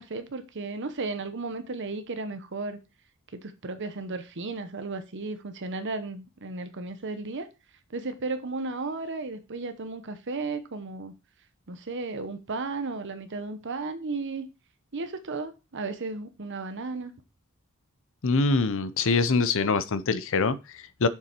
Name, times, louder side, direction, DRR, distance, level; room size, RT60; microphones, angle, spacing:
voice 1, 0.0-2.8 3.3-7.5 7.9-11.1 11.7-14.5 14.9-17.1, right 3 dB, 55° right, 0.9 m, -34 dB
voice 2, 18.2-21.1, left 4 dB, 65° left, 0.7 m, -24 dB
6.9 x 5.9 x 4.4 m
head